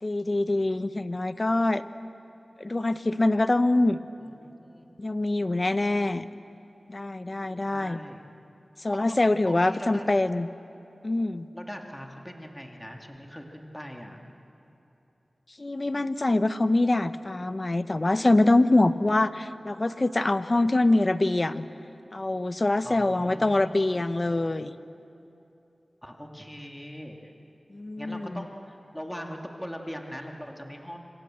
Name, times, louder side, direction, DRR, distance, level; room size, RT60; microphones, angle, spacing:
voice 1, 0.0-1.8 2.6-4.0 5.0-6.3 6.9-8.0 8.8-10.5 11.0-11.5 15.6-21.6 22.1-24.7 27.7-28.5, left 2 dB, 40° left, 12 dB, 0.9 m, -24 dB
voice 2, 4.3-4.9 7.7-8.2 8.9-9.2 9.4-10.1 11.5-14.2 22.8-24.1 26.0-27.3 28.0-31.0, equal, 5° left, 2 dB, 2.4 m, -40 dB
26.5 x 25.5 x 7.7 m, 2.8 s
wide cardioid pair, 70°, 0 cm